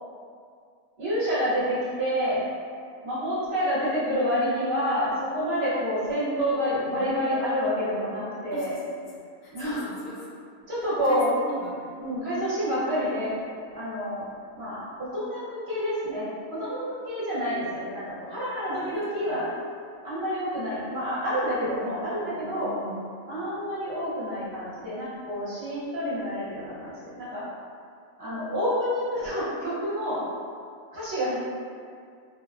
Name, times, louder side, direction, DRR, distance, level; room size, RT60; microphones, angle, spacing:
voice 1, 1.0-2.4 3.0-8.7 9.5-9.9 10.7-11.3 12.0-13.3 13.7-14.2 14.5-16.2 16.5-19.4 20.0-22.7 23.3-27.4 28.2-30.2 30.9-31.3, equal, 55° right, -11 dB, 0.9 m, -28 dB
voice 2, 9.4-10.3 11.0-12.0 18.7-19.5 22.2-23.1 31.3-31.4, right 1 dB, 85° left, -6 dB, 1.1 m, -39 dB
2.5 x 2.1 x 2.3 m, 2.2 s
omnidirectional pair, 1.5 m